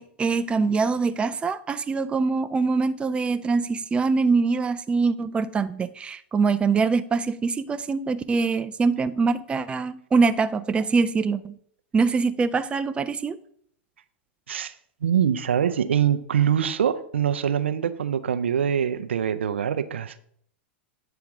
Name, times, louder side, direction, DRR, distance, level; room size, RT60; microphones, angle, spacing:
voice 1, 0.0-11.6 11.9-13.4, right 4 dB, 15° right, 0.4 m, -24 dB
voice 2, 15.0-20.2, right 8 dB, 85° right, 0.5 m, -24 dB
8.8 x 3.5 x 5.9 m
hypercardioid pair, 100°, 6 cm